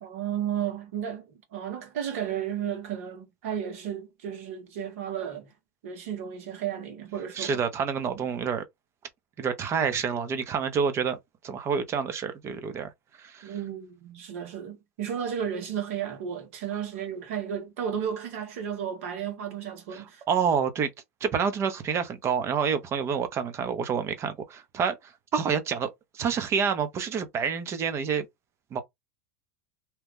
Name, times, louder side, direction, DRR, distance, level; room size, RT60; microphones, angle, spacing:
voice 1, 0.0-5.5 5.8-7.6 8.1-8.3 13.4-20.2, right 9 dB, 70° right, 1.4 m, -33 dB
voice 2, 7.3-8.6 9.4-11.2 11.4-12.9 13.2-13.5 19.9-20.9 21.2-25.9 26.1-28.2 28.7-28.8, right 6 dB, 35° right, 0.9 m, -28 dB
2.9 x 2.4 x 3.6 m
hypercardioid pair, 105°, 8 cm